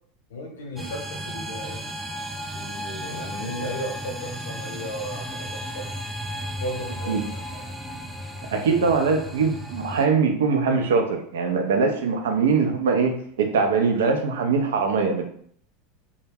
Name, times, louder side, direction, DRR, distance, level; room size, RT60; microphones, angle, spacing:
voice 1, 0.3-1.8 2.5-5.9 6.5-7.7, equal, 70° left, 1 dB, 0.7 m, -35 dB
sound 1, 0.8-10.1, equal, 5° right, 0.4 m, -34 dB
voice 2, 8.5-15.3, right 5 dB, 70° right, 4 dB, 0.4 m, -22 dB
2.2 x 2.0 x 3.3 m, 0.62 s
figure-of-eight pair, 80°, 0 cm